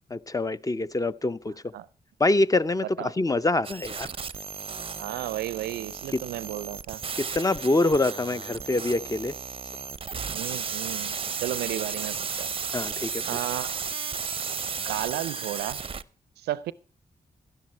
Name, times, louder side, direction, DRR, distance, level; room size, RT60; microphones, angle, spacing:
voice 1, 0.1-1.5 2.2-4.1 7.3-9.3 12.7-13.2, left 2 dB, 20° left, 0.5 m, -25 dB
sound 1, 3.6-16.0, right 5 dB, 35° right, 0.5 m, -34 dB
voice 2, 5.0-7.0 10.3-12.5 13.3-13.7 14.8-15.8 16.4-16.7, right 14 dB, 85° right, 0.4 m, -33 dB
11.5 x 10.5 x 4.4 m
supercardioid pair, 45°, 16 cm